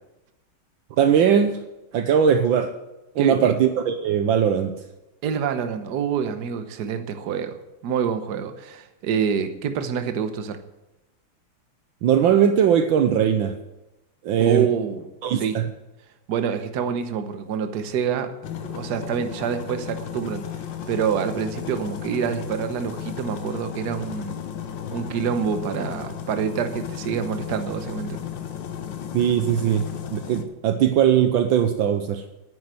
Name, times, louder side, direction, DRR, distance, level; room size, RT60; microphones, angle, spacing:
voice 1, 1.0-1.6 1.9-2.7 3.1-4.7 12.0-13.5 14.2-14.7 15.2-15.6 29.1-29.8 30.1-32.2, right 8 dB, 70° right, 8 dB, 1.5 m, -19 dB
voice 2, 3.2-3.5 5.2-10.6 14.4-15.0 15.3-15.6 16.3-18.3 18.6-20.5 20.9-24.4 24.9-28.2, right 7 dB, 55° right, 9 dB, 1.4 m, -27 dB
sound 1, 18.4-30.4, left 9 dB, 65° left, 1.6 m, -34 dB
9.6 x 9.6 x 7.8 m, 0.98 s
omnidirectional pair, 2.3 m